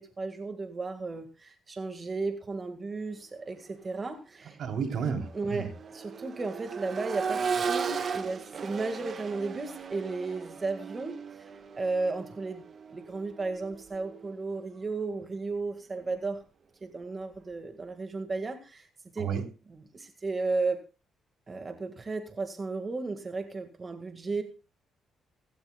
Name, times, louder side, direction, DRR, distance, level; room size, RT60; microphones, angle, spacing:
voice 1, 0.0-4.6 5.3-11.5 11.8-12.6 12.9-16.4 16.8-18.9 19.1-19.3 19.7-20.8 21.5-24.4, right 3 dB, 30° right, 6 dB, 1.7 m, -34 dB
Accelerating revving vroom, 3.8-4.0 4.4-14.3 16.0-16.1, right 6 dB, 50° right, 1.3 m, -36 dB
voice 2, 4.6-5.7 19.2-19.4, right 6 dB, 70° right, 4 dB, 3.3 m, -31 dB
16.5 x 16.5 x 2.3 m, 0.33 s
cardioid pair, 90°, 0 cm